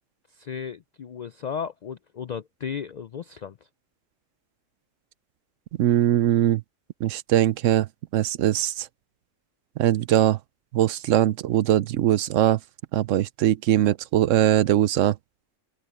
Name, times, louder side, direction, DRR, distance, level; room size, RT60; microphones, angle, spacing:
voice 1, 0.3-3.6, left 7 dB, 80° left, 0.3 m, -34 dB
voice 2, 5.8-6.6 7.0-7.9 8.1-8.9 9.8-10.4 10.7-12.6 12.9-15.1, right 12 dB, 75° right, 0.9 m, -21 dB
open air
omnidirectional pair, 1.3 m